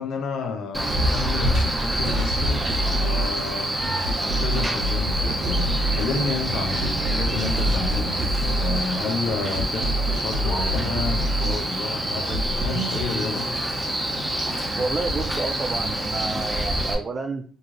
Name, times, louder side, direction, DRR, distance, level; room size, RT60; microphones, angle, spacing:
voice 1, 0.0-3.7 4.2-13.5, left 4 dB, 80° left, 4 dB, 0.6 m, -31 dB
Male speech man speaking, 0.7-16.9, right 1 dB, 10° right, 0.8 m, -27 dB
sound 1, 2.0-3.3 3.8-6.0 6.5-8.8 9.3-11.5 12.0-13.1, equal, 75° right, 0.7 m, -27 dB
sound 2, 5.4-12.7 13.1-13.8, right 2 dB, 20° left, 0.5 m, -35 dB
voice 2, 14.7-17.4, right 3 dB, 35° right, 4 dB, 0.3 m, -29 dB
3.0 x 2.6 x 2.5 m, 0.42 s
cardioid pair, 90°, 0 cm